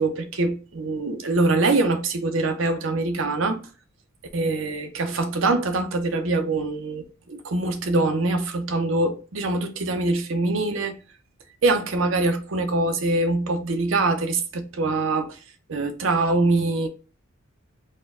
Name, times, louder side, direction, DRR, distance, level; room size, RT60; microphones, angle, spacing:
voice 1, 0.0-3.6 4.3-10.9 11.6-15.4 15.7-16.9, right 2 dB, 65° right, 0.6 m, -24 dB
4.2 x 2.2 x 3.6 m
head